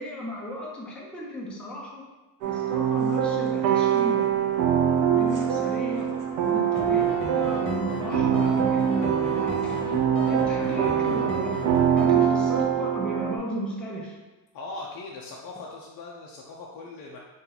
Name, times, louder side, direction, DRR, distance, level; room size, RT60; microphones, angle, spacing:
voice 1, 0.0-2.0 2.5-4.5 5.1-6.1 6.4-7.0 7.3-9.9 10.3-11.6 11.9-14.2, equal, 5° left, -4 dB, 0.6 m, -35 dB
sound 1, 2.4-12.7, right 3 dB, 45° right, 0.7 m, -45 dB
sound 2, 2.4-13.4, right 9 dB, 85° right, 0.6 m, -24 dB
sound 3, 6.7-12.1, left 3 dB, 30° left, 1.0 m, -35 dB
voice 2, 14.5-17.2, left 3 dB, 50° left, -3 dB, 0.6 m, -40 dB
2.9 x 2.6 x 3.9 m, 1.1 s
supercardioid pair, 105°, 41 cm